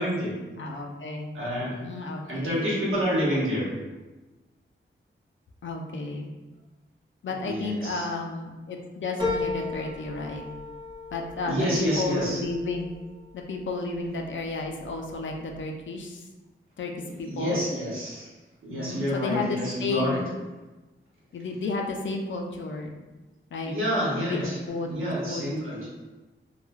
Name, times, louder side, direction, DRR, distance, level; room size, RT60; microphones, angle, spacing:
voice 1, 0.0-0.4 1.3-1.9 2.3-3.7 7.4-8.1 11.4-12.4 17.0-18.3 18.6-20.2 23.6-24.6 24.8-25.9, equal, 85° right, -7 dB, 1.0 m, -28 dB
voice 2, 0.6-1.3 1.8-2.7 5.6-6.3 7.2-10.4 11.1-12.9 13.3-16.3 16.8-17.6 18.7-20.3 21.3-22.9 23.5-23.7 24.1-25.5, left 3 dB, 70° left, 1 dB, 0.4 m, -32 dB
sound 1, 9.2-14.0 14.4-15.1 15.5-15.6, left 3 dB, 25° right, 0.8 m, -35 dB
3.1 x 2.2 x 2.2 m, 1.2 s
wide cardioid pair, 100°, 21 cm